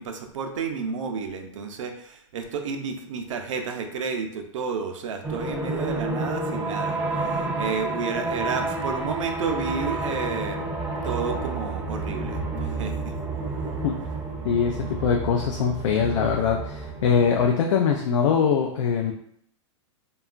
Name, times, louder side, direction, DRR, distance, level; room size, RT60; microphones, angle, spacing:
voice 1, 0.0-10.7 11.0-13.1, right 5 dB, 75° right, 5 dB, 0.5 m, -31 dB
sound 1, 5.2-17.5, right 3 dB, 10° right, 0.3 m, -30 dB
voice 2, 14.4-19.1, left 6 dB, 80° left, 2 dB, 0.4 m, -22 dB
2.8 x 2.3 x 2.4 m, 0.66 s
hypercardioid pair, 145°, 16 cm